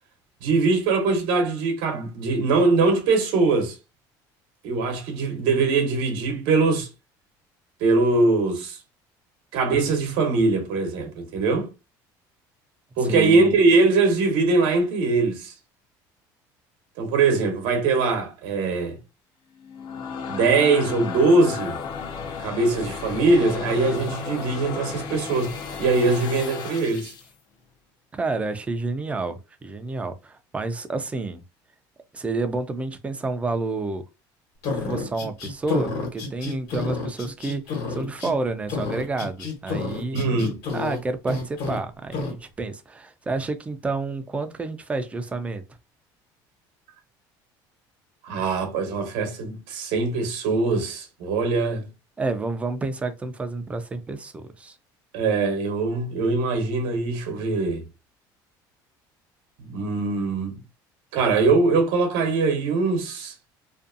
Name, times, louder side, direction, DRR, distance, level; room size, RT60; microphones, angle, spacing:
voice 1, 0.4-3.8 4.6-6.9 7.8-8.8 9.5-11.7 13.0-15.5 17.0-19.0 20.3-21.8 22.4-25.5 25.8-27.1 40.1-40.6 48.2-51.9 55.1-57.8 59.7-60.6 61.1-63.3, right 3 dB, 75° right, 0.8 m, -22 dB
voice 2, 13.1-13.5 28.1-31.4 32.1-34.0 34.7-40.2 40.7-45.6 52.2-54.8, right 3 dB, 15° right, 0.4 m, -29 dB
sound 1, 19.6-27.3, left 6 dB, 55° left, 0.5 m, -34 dB
sound 2, 34.6-38.3 38.7-41.0 41.3-41.8 42.1-42.3, left 4 dB, 75° left, 1.2 m, -30 dB
2.5 x 2.2 x 2.5 m
cardioid pair, 130°, 9 cm